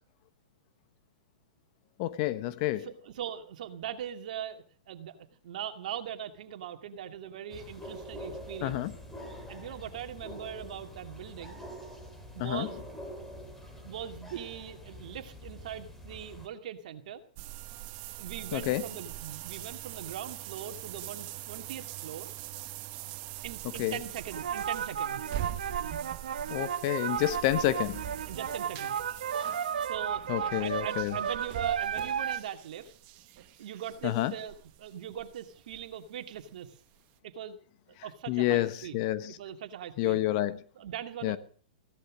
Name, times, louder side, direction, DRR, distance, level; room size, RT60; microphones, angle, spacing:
voice 1, 2.0-2.9 8.6-8.9 12.4-12.7 18.5-18.8 23.8-24.0 26.5-28.0 30.3-31.2 34.0-34.3 38.3-39.4 40.0-40.6 41.2-41.4, left 15 dB, 45° left, 1.2 m, -29 dB
voice 2, 2.8-5.2 5.4-8.8 9.5-11.6 12.3-12.8 13.7-17.2 18.2-22.3 23.4-25.2 28.3-29.0 29.9-32.9 33.4-36.7 37.2-37.6 37.9-39.0 39.4-40.2 40.7-41.4, right 9 dB, 60° right, 2.3 m, -41 dB
sound 1, 7.5-16.5, equal, 5° left, 3.5 m, -45 dB
sound 2, 17.4-36.0 36.3-36.4 36.9-37.0, right 14 dB, 40° right, 1.2 m, -43 dB
sound 3, 24.3-32.4, right 8 dB, 80° right, 1.3 m, -33 dB
17.0 x 11.5 x 6.3 m
hypercardioid pair, 140°, 5 cm